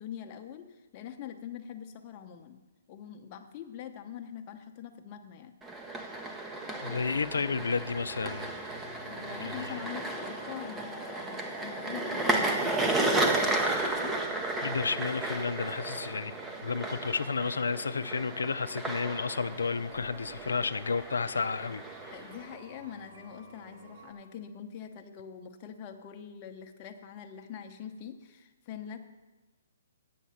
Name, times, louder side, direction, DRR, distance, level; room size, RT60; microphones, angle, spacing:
voice 1, 0.0-2.6 2.9-5.6 9.0-14.2 22.1-29.0, left 8 dB, 35° left, 5 dB, 0.9 m, -44 dB
sound 1, 5.6-22.6, right 2 dB, 10° right, 0.8 m, -33 dB
sound 2, 6.6-24.1, right 2 dB, 45° right, 2.2 m, -53 dB
voice 2, 6.8-8.5 9.2-9.7 14.6-16.3 16.6-21.8, left 5 dB, 85° left, 13 dB, 0.5 m, -32 dB
8.5 x 6.4 x 7.2 m, 1.2 s
hypercardioid pair, 145°, 0 cm